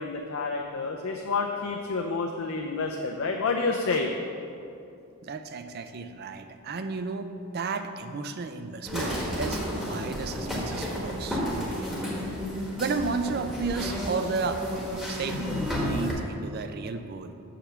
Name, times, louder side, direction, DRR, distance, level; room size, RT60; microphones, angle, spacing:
voice 1, 0.0-4.1, left 4 dB, 60° left, 2 dB, 0.5 m, -29 dB
voice 2, 5.2-12.0 12.8-14.6 15.1-15.5 15.8-17.3, right 4 dB, 45° right, 9 dB, 0.4 m, -33 dB
sound 1, 8.8-16.1, equal, ahead, 1.1 m, -32 dB
5.9 x 5.0 x 6.7 m, 2.6 s
head